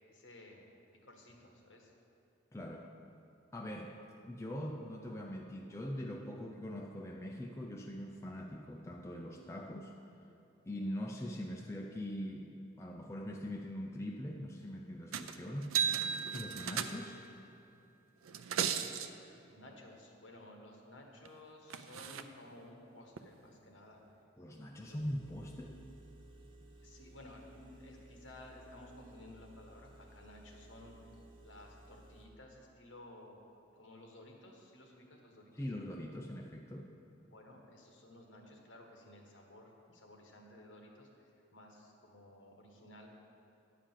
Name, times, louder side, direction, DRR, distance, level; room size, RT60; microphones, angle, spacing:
voice 1, 0.1-0.6 1.0-1.9 19.5-24.0 24.8-25.0 26.8-30.9 31.4-33.4 33.7-35.5 37.0-43.1, left 1 dB, 60° left, 1 dB, 1.4 m, -55 dB
voice 2, 2.5-2.9 3.5-4.0 4.3-9.9 10.7-15.8 16.3-17.2 24.4-25.8 35.5-36.9, equal, 15° left, 0 dB, 0.4 m, -42 dB
sound 1, 15.1-15.4 15.6-17.3 18.3-19.1 21.3-21.4 21.7-22.2 23.2-23.3, right 7 dB, 85° right, 0.5 m, -35 dB
Engine, 24.9-32.3, right 1 dB, 25° right, 1.0 m, -57 dB
10.0 x 5.0 x 7.4 m, 2.7 s
head